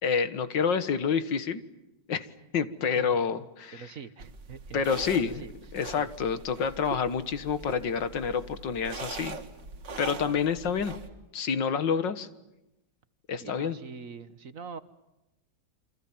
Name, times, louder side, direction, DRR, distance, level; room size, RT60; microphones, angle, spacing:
voice 1, 0.0-1.6 2.1-2.3 2.5-3.9 4.7-5.4 5.7-9.4 10.0-11.0 11.3-12.3 13.3-13.8, left 6 dB, 85° left, 12 dB, 2.2 m, -28 dB
voice 2, 3.7-5.5 6.0-6.1 10.2-10.3 13.4-14.8, right 6 dB, 50° right, 13 dB, 1.5 m, -44 dB
sound 1, 4.2-11.1, right 3 dB, 75° right, 2.7 m, -42 dB
28.5 x 27.0 x 7.3 m, 0.92 s
omnidirectional pair, 1.9 m